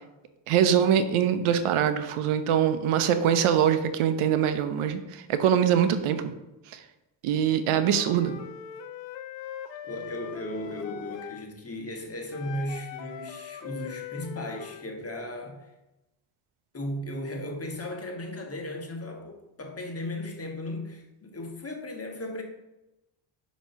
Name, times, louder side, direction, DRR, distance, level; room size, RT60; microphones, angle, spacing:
voice 1, 0.5-6.3 6.7-6.8 7.2-8.4, right 9 dB, 80° right, 0.7 m, -23 dB
voice 2, 7.5-7.9 9.8-15.7 16.7-22.4, left 1 dB, 30° left, 1.3 m, -36 dB
Wind instrument woodwind instrument, 7.8-11.5 12.3-14.9, left 9 dB, 65° left, 0.6 m, -41 dB
6.0 x 3.1 x 5.4 m
cardioid pair, 75°, 49 cm